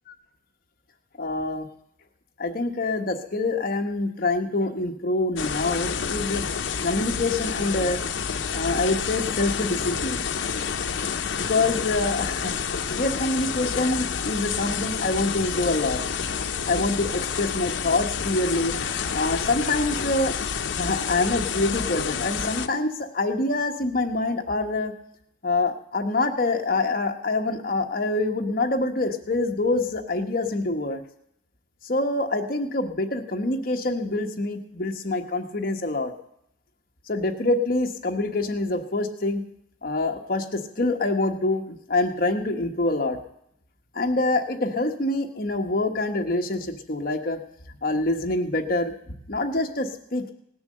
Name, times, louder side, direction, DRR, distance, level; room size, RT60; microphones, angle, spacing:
voice 1, 1.2-1.7 2.4-6.4 6.8-8.0 8.5-10.2 11.4-12.5 12.9-16.0 16.7-20.3 20.8-24.9 25.4-31.0 31.8-36.1 37.1-39.4 39.8-43.2 43.9-47.4 47.8-48.9 49.3-50.3, left 2 dB, 50° left, 4 dB, 1.2 m, -25 dB
sound 1, 5.4-22.7, left 6 dB, 90° left, 0.7 m, -29 dB
18.5 x 7.0 x 6.6 m, 0.76 s
head